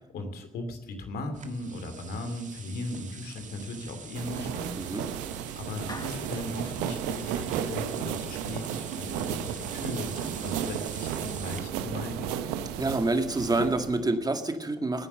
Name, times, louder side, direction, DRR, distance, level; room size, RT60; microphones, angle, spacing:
voice 1, 0.1-4.7 5.6-12.4, left 2 dB, 70° left, 7 dB, 2.7 m, -37 dB
sound 1, 1.3-11.6, right 6 dB, 45° right, 1.8 m, -45 dB
sound 2, 4.1-14.0, right 9 dB, 80° right, 0.9 m, -34 dB
voice 2, 4.8-5.1 12.8-15.1, right 2 dB, 25° right, 6 dB, 2.0 m, -27 dB
Clapping, 5.9-6.6, left 2 dB, 25° left, 1.7 m, -43 dB
19.0 x 9.7 x 6.7 m, 0.94 s
hypercardioid pair, 45°, 17 cm